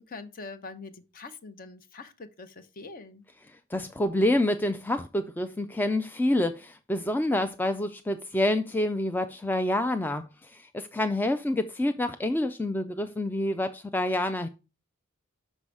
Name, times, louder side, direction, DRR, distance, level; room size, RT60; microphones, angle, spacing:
voice 1, 0.0-3.2, left 3 dB, 40° left, 0.7 m, -44 dB
voice 2, 3.7-14.5, left 1 dB, 10° left, 0.3 m, -27 dB
6.1 x 5.5 x 4.7 m
head